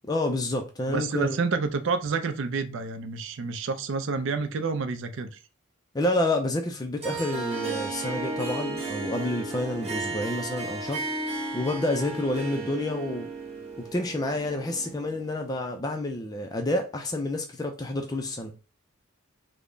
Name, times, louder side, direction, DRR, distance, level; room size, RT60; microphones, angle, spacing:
voice 1, 0.0-1.4 5.9-11.0 11.5-13.3 13.8-18.5, left 1 dB, 15° left, 0.3 m, -29 dB
voice 2, 0.9-5.4, right 4 dB, 60° right, 0.4 m, -29 dB
Harp, 7.0-15.4, right 3 dB, 30° right, 1.0 m, -34 dB
3.4 x 2.0 x 3.7 m
head